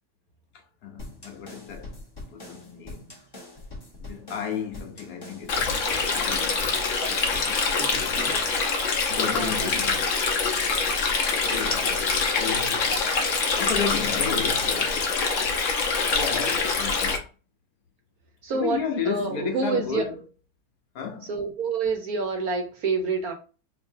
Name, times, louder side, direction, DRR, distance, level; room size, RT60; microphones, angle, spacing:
voice 1, 0.5-1.9 2.3-3.2 4.0-6.7 7.4-8.2 9.1-10.2 11.4-12.9 13.6-15.2 16.1-17.3 18.5-20.2 20.9-21.3, left 7 dB, 75° left, 1.4 m, -33 dB
sound 1, 1.0-8.5, left 2 dB, 15° left, 1.1 m, -42 dB
Stream, 5.5-17.2, left 4 dB, 55° left, 1.1 m, -25 dB
voice 2, 9.3-9.8 18.4-18.8 19.0-20.0 21.3-23.3, right 4 dB, 70° right, 1.5 m, -27 dB
4.7 x 2.7 x 2.7 m
omnidirectional pair, 1.7 m